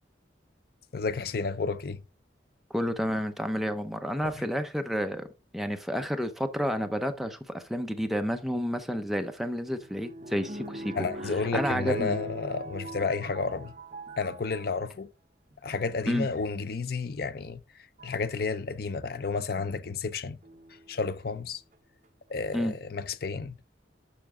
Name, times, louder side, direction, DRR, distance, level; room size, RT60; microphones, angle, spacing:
voice 1, 0.9-2.0 10.9-13.7 14.2-15.1 15.6-17.6 18.0-20.4 20.9-21.6 22.3-23.6, left 4 dB, 55° left, 0.5 m, -31 dB
voice 2, 2.7-5.3 5.5-10.9 11.5-12.2 16.1-16.3 22.5-22.7, equal, ahead, 0.7 m, -30 dB
sound 1, 9.1-14.8 15.5-16.0 17.2-17.3 18.0-18.3 20.4-21.1 21.7-21.8 22.0-22.1, right 1 dB, 40° right, 1.1 m, -40 dB
7.0 x 6.0 x 3.6 m
head